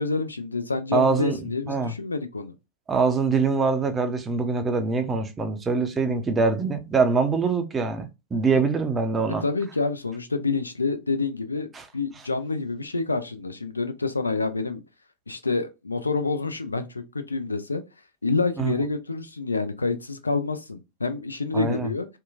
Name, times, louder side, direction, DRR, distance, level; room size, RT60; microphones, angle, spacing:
voice 1, 0.0-2.5 9.4-14.8 15.3-17.8 18.2-22.1, left 3 dB, 80° left, 0.3 m, -28 dB
voice 2, 0.9-1.4 1.7-1.9 2.9-9.4 11.7-11.8 18.6-18.7 21.5-21.9, right 4 dB, 20° right, 0.5 m, -24 dB
2.8 x 2.2 x 2.5 m
figure-of-eight pair, 90°, 0 cm